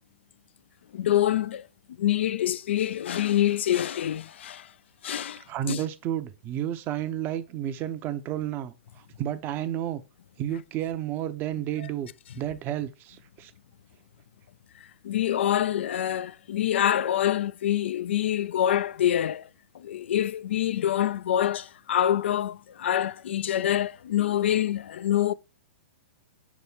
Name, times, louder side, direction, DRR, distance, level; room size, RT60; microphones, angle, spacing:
voice 1, 0.9-1.7 2.0-4.7 5.0-5.8 11.8-11.9 15.0-19.5 19.7-25.3, left 11 dB, 65° left, 0.4 m, -26 dB
voice 2, 5.5-8.7 9.2-10.0 10.4-12.1 12.4-13.5, right 11 dB, 30° right, 0.7 m, -31 dB
7.2 x 3.1 x 4.4 m
hypercardioid pair, 115°, 7 cm